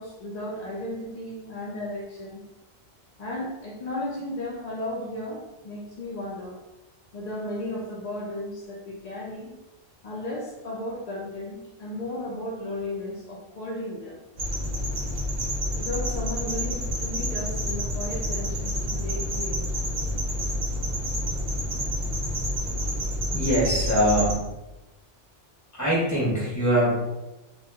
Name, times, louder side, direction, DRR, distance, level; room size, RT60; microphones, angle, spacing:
voice 1, 0.0-2.4 3.2-6.6 7.1-9.5 10.0-14.2 15.8-19.7, left 1 dB, 65° left, -3 dB, 0.4 m, -34 dB
sound 1, 14.4-24.3, equal, 45° right, 0.6 m, -29 dB
voice 2, 23.3-24.4 25.8-27.1, equal, 15° left, -7 dB, 1.2 m, -23 dB
2.8 x 2.3 x 3.3 m, 1.0 s
omnidirectional pair, 1.2 m